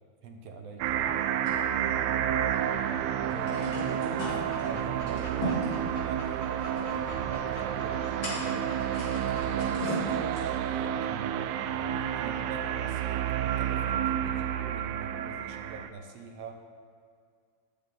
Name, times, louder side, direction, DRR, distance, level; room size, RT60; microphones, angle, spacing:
voice 1, 0.2-1.2 4.3-6.3 7.2-8.8 9.3-10.3 10.7-16.6, right 5 dB, 65° right, 4 dB, 1.9 m, -44 dB
sound 1, 0.8-15.9, right 10 dB, 90° right, 2.0 m, -30 dB
sound 2, 1.4-2.6 2.9-3.0 3.2-10.8, equal, 35° left, 3.5 m, -39 dB
voice 2, 1.8-4.2, left 3 dB, 70° left, -1 dB, 0.9 m, -47 dB
Dog, 4.1-9.6, left 1 dB, 20° left, 0.9 m, -46 dB
14.5 x 10.5 x 3.8 m, 2.1 s
omnidirectional pair, 3.3 m